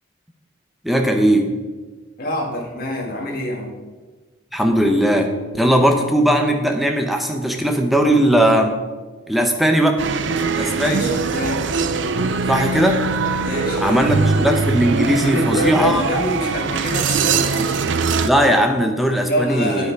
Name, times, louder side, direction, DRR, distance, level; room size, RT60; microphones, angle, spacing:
voice 1, 0.8-1.5 4.5-8.8 9.3-10.1 10.6-11.0 12.5-13.0 13.8-16.5 18.2-19.9, equal, ahead, 3 dB, 0.9 m, -18 dB
voice 2, 2.2-3.7 10.7-11.7 13.4-14.1 15.2-17.8 19.3-19.9, left 1 dB, 50° left, -1 dB, 2.0 m, -26 dB
Bass guitar, 4.7-11.0, left 2 dB, 80° left, 1.7 m, -41 dB
sound 1, 10.0-18.3, right 4 dB, 70° right, 0.5 m, -21 dB
9.3 x 8.2 x 4.7 m, 1.3 s
head